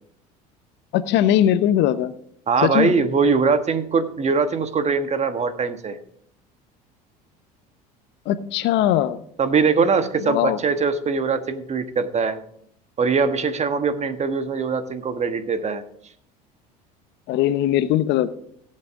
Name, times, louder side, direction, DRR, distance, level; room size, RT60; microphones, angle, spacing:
voice 1, 0.9-2.1 2.6-2.9 8.3-9.2 10.2-10.6 17.3-18.3, left 11 dB, 60° left, 13 dB, 0.9 m, -20 dB
voice 2, 2.5-6.0 9.4-12.4 13.0-15.8, right 5 dB, 35° right, 10 dB, 1.4 m, -22 dB
17.0 x 7.8 x 3.8 m, 0.67 s
hypercardioid pair, 75°, 20 cm